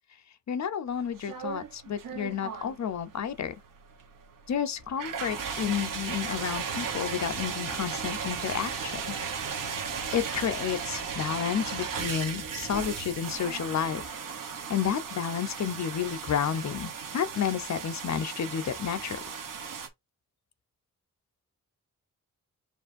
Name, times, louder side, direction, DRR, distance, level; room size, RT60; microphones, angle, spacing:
voice 1, 0.5-3.5 4.5-9.2 10.1-14.0 14.7-19.2, left 8 dB, 60° left, 0.6 m, -31 dB
sound 1, 0.9-19.9, right 6 dB, 85° right, 1.0 m, -36 dB
7.0 x 2.5 x 2.5 m
wide cardioid pair, 135°, 32 cm